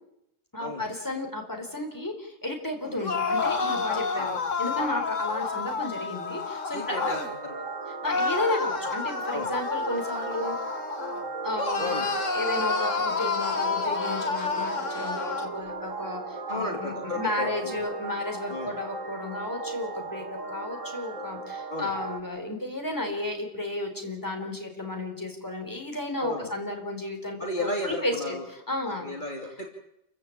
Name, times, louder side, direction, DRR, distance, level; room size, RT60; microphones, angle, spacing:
voice 1, 0.5-7.1 8.0-10.6 11.4-12.0 12.3-28.4 28.7-29.1, left 1 dB, 15° left, 3 dB, 4.1 m, -33 dB
sound 1, 3.0-7.3 8.0-11.2 11.6-15.5, left 4 dB, 75° left, 2.1 m, -29 dB
voice 2, 6.7-7.6 9.3-9.5 11.8-12.1 16.5-17.8 18.5-18.7 21.7-21.9 26.2-26.5 27.4-28.5 28.8-29.7, left 2 dB, 40° left, 1 dB, 3.0 m, -34 dB
sound 2, 6.9-22.2, right 3 dB, 85° right, 2.8 m, -37 dB
28.5 x 15.0 x 8.6 m, 0.81 s
omnidirectional pair, 1.3 m